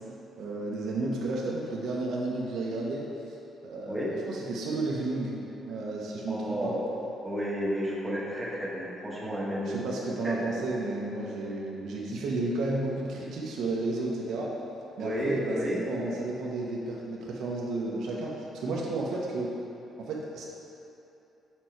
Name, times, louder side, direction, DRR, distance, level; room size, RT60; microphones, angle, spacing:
voice 1, 0.4-3.1 3.6-5.3 5.6-6.7 9.7-14.5 15.0-19.5 20.0-20.4, right 2 dB, 75° right, -3 dB, 0.8 m, -32 dB
voice 2, 6.3-6.9 7.2-9.8 10.2-10.4 15.0-15.8, equal, 10° right, -6 dB, 1.3 m, -32 dB
6.2 x 4.5 x 4.5 m, 2.9 s
cardioid pair, 120°, 0 cm